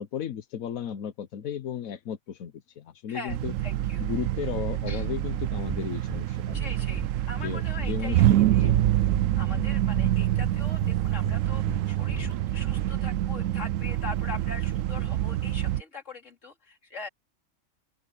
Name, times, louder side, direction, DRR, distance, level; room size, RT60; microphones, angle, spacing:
voice 1, 0.0-3.5 4.0-6.5 7.4-8.8, left 9 dB, 85° left, 1.3 m, -35 dB
sound 1, 3.3-15.8, right 13 dB, 70° right, 1.0 m, -26 dB
voice 2, 3.6-4.0 4.9-5.1 6.5-8.3 8.5-8.7 9.4-17.1, left 3 dB, 60° left, 3.4 m, -42 dB
sound 2, 5.7-5.8 6.1-6.2 6.5-6.7 6.9-7.1 7.4-7.5 7.8-7.9 8.2-8.4 8.7-9.2 9.5-9.7 9.9-10.1 10.4-10.5 10.8-10.9 11.2-11.4 11.7-11.8 12.1-12.3, right 1 dB, 10° right, 1.2 m, -35 dB
open air
omnidirectional pair, 1.4 m